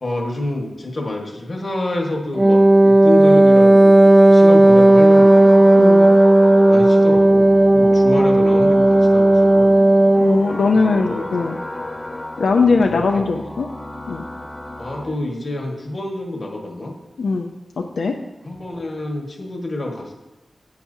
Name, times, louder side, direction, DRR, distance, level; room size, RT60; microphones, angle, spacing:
voice 1, 0.0-5.7 6.6-9.8 10.7-11.2 12.9-13.2 14.8-16.9 18.4-20.1, left 2 dB, 45° left, 2 dB, 1.5 m, -28 dB
Wind instrument woodwind instrument, 2.3-10.5, right 1 dB, 15° right, 0.4 m, -12 dB
sound 1, 4.5-15.1, left 1 dB, 25° left, 0.8 m, -33 dB
voice 2, 5.8-6.1 10.2-11.6 12.4-13.7 14.1-14.2 17.2-17.5 17.8-18.2, left 4 dB, 90° left, 3 dB, 0.5 m, -19 dB
10.5 x 8.8 x 2.7 m, 1.0 s
wide cardioid pair, 95°, 0 cm